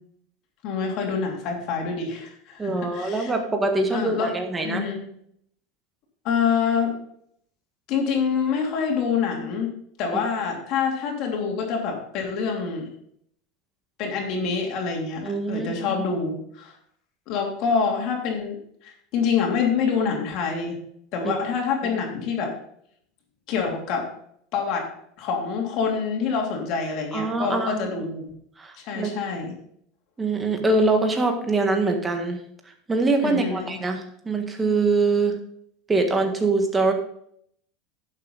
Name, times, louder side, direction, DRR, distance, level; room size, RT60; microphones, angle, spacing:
voice 1, 0.6-3.3 3.9-4.3 4.6-5.0 6.2-6.9 7.9-9.7 10.0-12.9 14.0-16.7 17.3-18.6 18.8-20.8 21.1-22.5 23.5-24.1 24.5-24.9 25.2-28.3 28.8-29.6 33.2-33.7, left 6 dB, 55° left, 1 dB, 3.0 m, -26 dB
voice 2, 2.6-4.9 10.1-10.2 15.2-15.9 21.2-21.3 27.1-27.9 28.6-29.1 30.2-32.4 32.9-34.0 34.3-35.4 35.9-36.9, right 3 dB, 15° right, 4 dB, 1.8 m, -23 dB
11.0 x 7.4 x 4.1 m, 0.69 s
supercardioid pair, 135°, 0 cm